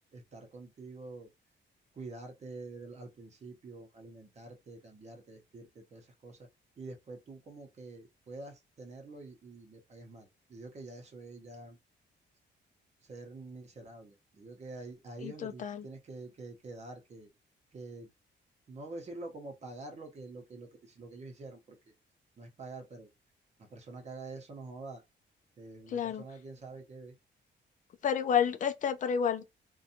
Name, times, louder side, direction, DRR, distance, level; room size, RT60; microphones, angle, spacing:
voice 1, 0.1-1.3 2.0-6.5 6.8-11.8 13.0-17.3 17.7-18.1 18.7-21.9 22.4-23.1 23.7-25.0 25.6-27.1, right 3 dB, 35° right, 0.7 m, -47 dB
voice 2, 15.2-15.8 25.9-26.2 28.0-29.4, left 8 dB, 40° left, 0.4 m, -30 dB
2.6 x 2.2 x 2.7 m
cardioid pair, 160°, 20 cm